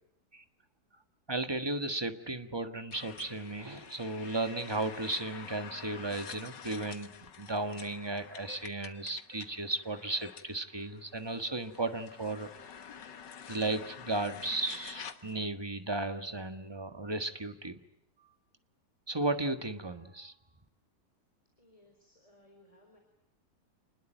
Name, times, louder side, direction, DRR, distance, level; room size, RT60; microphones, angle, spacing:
voice 1, 1.3-12.5 13.5-17.8 19.1-20.3, right 2 dB, 15° right, 8 dB, 1.4 m, -35 dB
sound 1, 2.9-15.5, left 7 dB, 90° left, 2.1 m, -48 dB
voice 2, 21.6-23.0, left 1 dB, 20° left, 3 dB, 4.3 m, -62 dB
28.0 x 21.0 x 9.1 m, 0.78 s
omnidirectional pair, 1.8 m